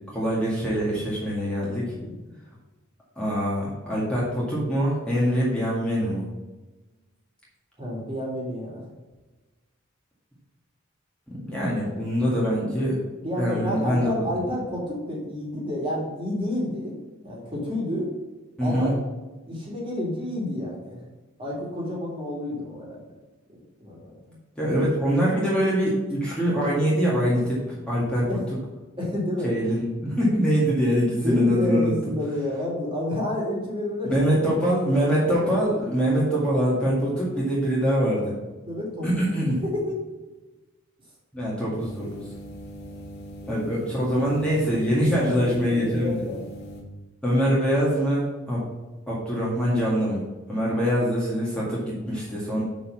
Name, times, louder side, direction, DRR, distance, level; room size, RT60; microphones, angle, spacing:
voice 1, 0.1-1.8 3.2-6.3 11.3-13.0 13.4-14.1 18.6-18.9 24.6-28.3 29.4-31.9 34.0-38.3 39.0-39.6 41.3-42.2 43.5-46.2 47.2-48.6 49.1-50.2 50.5-52.6, equal, 5° left, -7 dB, 2.0 m, -24 dB
voice 2, 1.9-2.3 7.8-8.8 13.2-18.1 18.6-18.9 19.5-21.0 21.4-23.1 23.5-24.2 28.3-28.4 29.0-29.5 31.2-34.3 38.6-39.2 39.7-40.1 43.4-43.7 45.1-46.4, left 1 dB, 25° right, -4 dB, 2.6 m, -30 dB
sound 1, 41.8-46.8, equal, 50° left, 1.7 m, -40 dB
6.4 x 5.5 x 5.9 m, 1.2 s
head